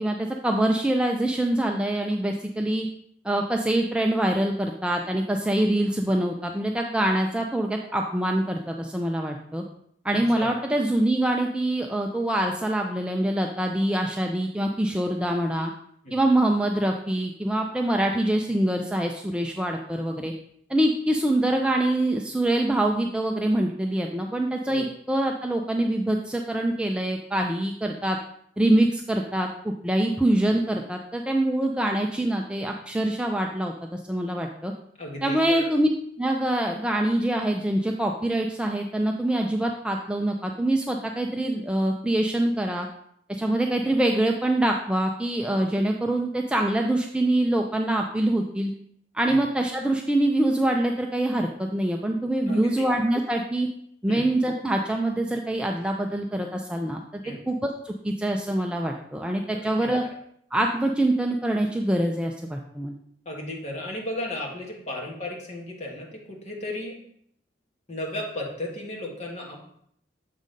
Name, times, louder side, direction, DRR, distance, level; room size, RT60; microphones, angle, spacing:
voice 1, 0.0-2.9 3.2-9.6 10.0-15.7 16.1-20.3 20.7-28.2 28.6-34.7 35.2-35.9 36.2-42.9 43.3-48.7 49.1-53.7 54.0-60.0 60.5-63.0, right 1 dB, 5° right, 2 dB, 0.3 m, -25 dB
voice 2, 10.1-10.5 16.0-16.2 24.6-24.8 35.0-35.7 49.3-49.4 52.5-52.8 54.1-54.2 57.2-57.4 59.5-59.9 63.2-66.9 67.9-69.6, left 1 dB, 35° left, -1 dB, 1.5 m, -35 dB
7.3 x 3.9 x 5.1 m, 0.69 s
head